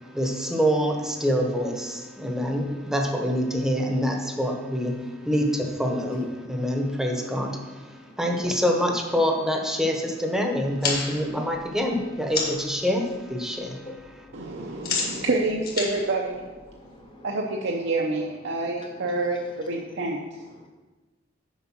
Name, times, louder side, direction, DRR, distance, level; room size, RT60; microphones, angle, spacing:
voice 1, 0.1-13.8, equal, 5° right, 0.9 m, -26 dB
sound 1, 10.7-12.7 13.1-13.6 13.8-17.1, left 4 dB, 50° left, 1.7 m, -32 dB
voice 2, 13.8-14.9 16.8-17.2, left 1 dB, 25° left, 1.0 m, -40 dB
voice 3, 14.3-16.5 17.2-20.5, right 2 dB, 60° right, 0.7 m, -28 dB
7.2 x 5.1 x 6.1 m
head